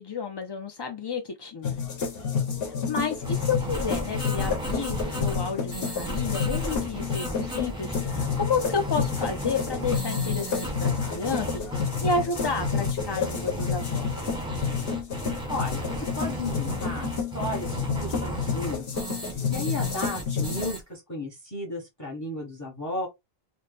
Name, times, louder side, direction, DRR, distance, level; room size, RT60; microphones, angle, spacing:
voice 1, 0.0-1.8 2.6-14.2, left 4 dB, 45° left, 0.3 m, -31 dB
sound 1, 1.6-20.7, left 6 dB, 70° left, 1.1 m, -30 dB
sound 2, 3.2-20.8, right 1 dB, 5° right, 0.9 m, -34 dB
voice 2, 15.5-23.1, left 1 dB, 20° left, 1.0 m, -34 dB
4.1 x 2.1 x 3.3 m
omnidirectional pair, 1.0 m